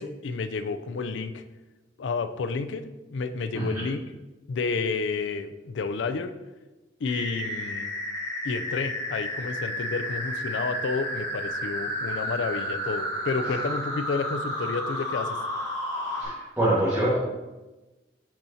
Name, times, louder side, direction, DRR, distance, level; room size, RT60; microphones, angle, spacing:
voice 1, 0.0-1.4 2.0-4.0 4.5-6.3 7.0-7.9 8.4-15.4, left 4 dB, 80° left, 10 dB, 0.4 m, -30 dB
sound 1, 7.1-16.2, equal, 20° left, 1.9 m, -32 dB
voice 2, 16.1-17.2, right 1 dB, 10° right, -11 dB, 1.5 m, -25 dB
10.0 x 4.3 x 2.7 m, 1.1 s
head